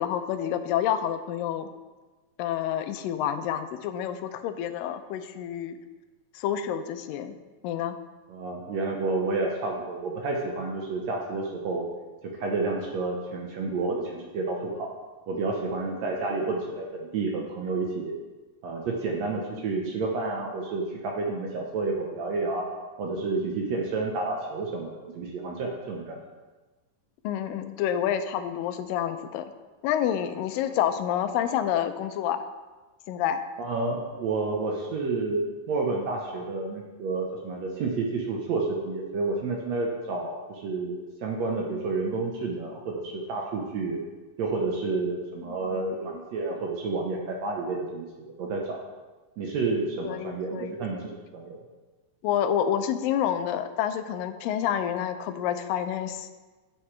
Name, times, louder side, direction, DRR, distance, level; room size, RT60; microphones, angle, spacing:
voice 1, 0.0-1.7 2.4-5.8 6.3-7.3 7.6-8.0 16.3-16.4 27.2-29.5 29.8-32.4 33.1-33.4 45.5-45.9 50.0-50.7 52.2-56.3, left 10 dB, 90° left, 9 dB, 2.3 m, -28 dB
voice 2, 8.3-11.8 12.4-14.9 15.3-18.2 18.6-22.7 23.0-26.2 33.6-44.0 44.4-48.8 49.4-51.0 51.3-51.6, right 3 dB, 70° right, 0 dB, 1.8 m, -30 dB
9.4 x 8.0 x 3.2 m, 1.3 s
omnidirectional pair, 3.9 m